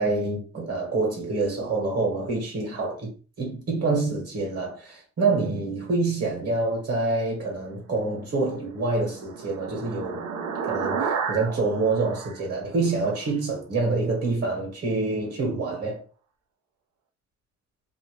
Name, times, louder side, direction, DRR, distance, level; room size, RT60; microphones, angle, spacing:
voice 1, 0.0-3.1 3.4-10.2 10.6-16.0, right 3 dB, 55° right, 1.3 m, -26 dB
sound 1, 8.5-13.3, right 6 dB, 70° right, 0.6 m, -32 dB
2.8 x 2.1 x 3.1 m
cardioid pair, 90°, 30 cm